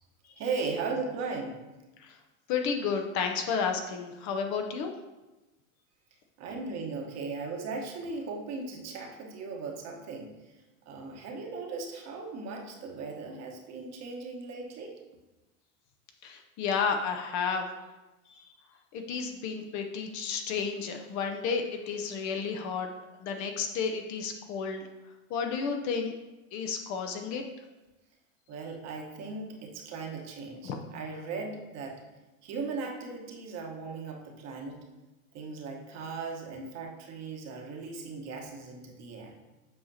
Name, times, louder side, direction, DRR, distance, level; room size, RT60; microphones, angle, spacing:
voice 1, 0.4-1.6 6.4-10.3 10.9-14.9 28.5-32.0 32.4-34.8 35.3-39.4, right 4 dB, 40° right, 1 dB, 1.2 m, -37 dB
voice 2, 2.5-4.9 16.2-17.7 18.3-18.5 18.9-22.9 23.2-24.8 25.3-26.1 26.5-27.4 30.6-30.8, left 6 dB, 45° left, 5 dB, 0.7 m, -32 dB
7.6 x 4.8 x 2.8 m, 1.1 s
hypercardioid pair, 100°, 42 cm